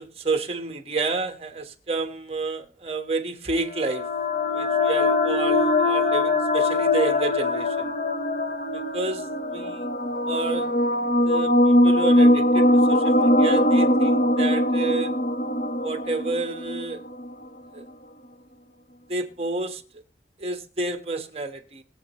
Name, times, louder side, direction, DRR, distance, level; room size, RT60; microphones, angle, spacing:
voice 1, 0.0-4.1 4.5-7.9 8.7-9.8 10.3-10.7 11.2-15.1 15.8-17.0 17.7-17.8 19.1-19.8 20.4-21.8, right 3 dB, 35° right, 1.3 m, -30 dB
sound 1, 3.7-17.3, left 1 dB, 45° left, 1.1 m, -21 dB
21.5 x 7.8 x 3.1 m
head